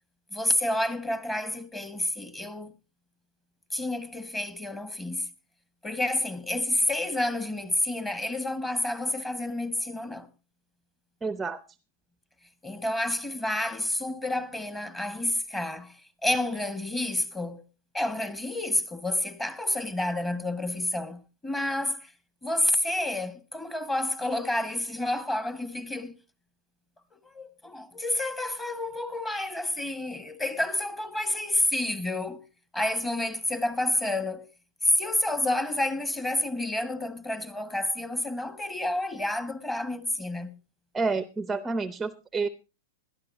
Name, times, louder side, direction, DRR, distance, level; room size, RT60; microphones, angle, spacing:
voice 1, 0.3-2.7 3.7-5.3 5.8-10.3 12.6-17.6 17.9-22.1 22.4-26.1 27.3-32.4 32.7-34.5 34.8-40.5, left 1 dB, 10° left, 1.6 m, -29 dB
voice 2, 11.2-11.6 40.9-42.5, right 4 dB, 10° right, 0.6 m, -29 dB
20.0 x 12.5 x 2.7 m
hypercardioid pair, 115°, 0 cm